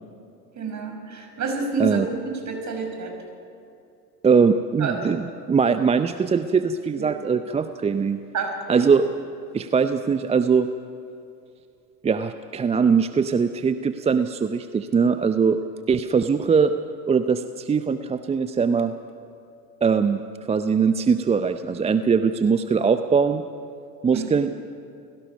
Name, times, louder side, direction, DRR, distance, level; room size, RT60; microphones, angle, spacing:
voice 1, 0.6-3.1 4.8-5.0 7.0-7.1 8.3-8.9 24.1-24.3, right 4 dB, 35° right, 3 dB, 5.5 m, -29 dB
voice 2, 4.2-8.2 8.7-9.0 9.5-10.7 12.0-15.6 15.9-16.7 17.1-18.9 19.8-20.2 20.5-23.4 24.0-24.5, right 5 dB, 15° right, 10 dB, 0.5 m, -21 dB
29.0 x 17.5 x 5.3 m, 2.6 s
hypercardioid pair, 80°, 49 cm